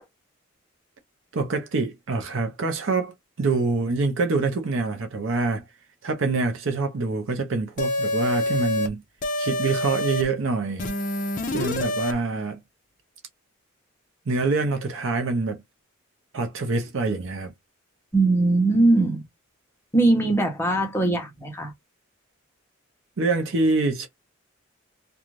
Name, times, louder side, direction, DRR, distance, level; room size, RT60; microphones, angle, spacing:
voice 1, 1.3-5.6 6.0-9.0 9.4-10.9 11.5-12.6 14.3-15.6 16.3-17.5 23.2-24.1, right 3 dB, 65° right, 0.6 m, -25 dB
sound 1, 7.8-8.9 9.2-10.2 10.8-12.1, left 1 dB, 40° left, 0.5 m, -26 dB
voice 2, 18.1-19.3 19.9-21.7, right 2 dB, 10° left, 0.8 m, -20 dB
2.5 x 2.3 x 3.0 m
head